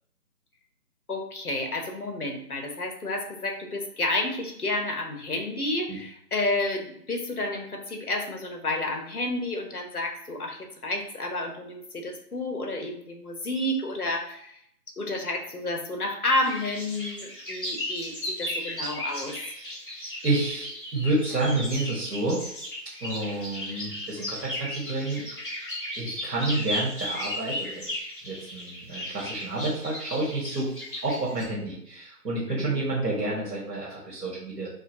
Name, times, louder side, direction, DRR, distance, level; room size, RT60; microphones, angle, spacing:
voice 1, 1.1-14.6 15.0-19.4 32.5-32.8, left 2 dB, 65° left, 4 dB, 0.9 m, -30 dB
sound 1, 16.4-31.4, left 1 dB, 30° left, 1.1 m, -35 dB
voice 2, 20.2-22.4 23.0-25.2 26.0-30.7 31.0-34.7, right 2 dB, 85° right, -6 dB, 1.5 m, -29 dB
4.8 x 2.4 x 2.8 m, 0.70 s
figure-of-eight pair, 170°, 49 cm